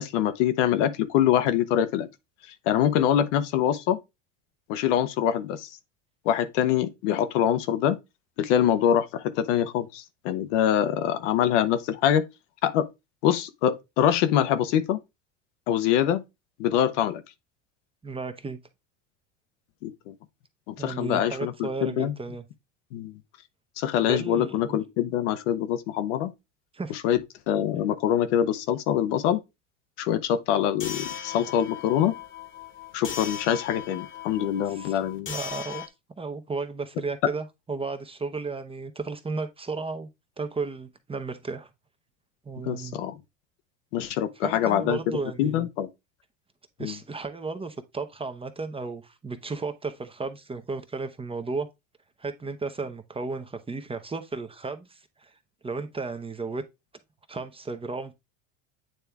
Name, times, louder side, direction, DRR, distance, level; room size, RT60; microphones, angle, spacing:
voice 1, 0.0-2.1 2.7-4.0 4.7-5.7 6.2-8.0 8.4-12.2 12.6-12.9 13.2-15.0 15.7-16.2 16.6-17.2 19.8-20.1 20.7-22.1 22.9-23.1 23.8-26.3 26.9-27.2 27.5-29.4 30.0-32.1 32.9-35.3 42.6-43.1 43.9-45.9 46.8-46.9, left 10 dB, 70° left, 1.0 m, -24 dB
voice 2, 18.0-18.6 20.8-22.5 24.1-24.8 26.7-27.0 31.3-31.5 34.7-35.0 35.3-35.8 36.2-40.1 40.4-41.7 42.4-43.0 44.4-45.7 46.8-51.7 52.2-55.3 55.6-56.6 57.3-58.1, right 4 dB, 15° right, 0.9 m, -34 dB
sound 1, 30.8-35.9, left 8 dB, 30° left, 1.3 m, -38 dB
9.0 x 3.3 x 3.4 m
hypercardioid pair, 90°, 38 cm